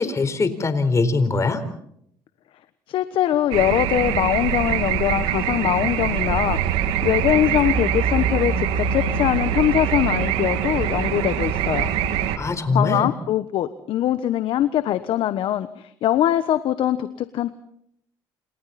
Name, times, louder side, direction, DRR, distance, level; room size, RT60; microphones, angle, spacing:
voice 1, 0.0-1.6 12.4-13.1, left 3 dB, 30° left, 11 dB, 4.1 m, -22 dB
voice 2, 2.9-11.9 12.7-17.5, left 12 dB, 65° left, 12 dB, 1.2 m, -22 dB
sound 1, 3.5-12.4, right 9 dB, 80° right, 2.2 m, -23 dB
28.5 x 28.5 x 4.3 m, 0.70 s
supercardioid pair, 85°, 10 cm